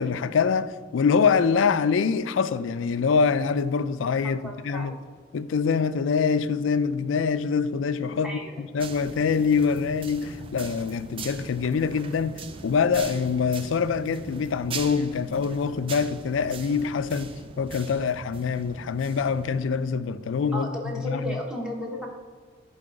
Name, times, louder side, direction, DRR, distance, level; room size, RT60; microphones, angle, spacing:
voice 1, 0.0-5.0 5.3-12.3 12.6-20.7 21.0-21.4, left 5 dB, 75° left, 0.4 m, -25 dB
voice 2, 4.2-5.0 8.2-8.6 20.5-22.1, left 1 dB, 5° right, 1.0 m, -34 dB
sound 1, 8.8-19.6, right 4 dB, 25° right, 0.3 m, -41 dB
sound 2, 11.6-20.4, right 1 dB, 90° right, 0.9 m, -50 dB
11.0 x 3.9 x 4.0 m
head